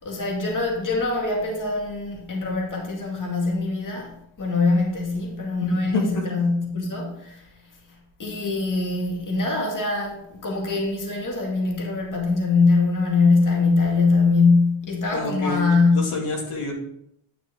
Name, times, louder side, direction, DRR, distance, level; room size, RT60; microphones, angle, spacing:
voice 1, 0.0-7.5 8.2-16.1, left 3 dB, 40° left, -1 dB, 2.2 m, -22 dB
voice 2, 5.6-6.2 15.1-16.7, left 3 dB, 80° left, -1 dB, 2.4 m, -28 dB
10.0 x 5.9 x 3.8 m, 0.75 s
cardioid pair, 115°, 49 cm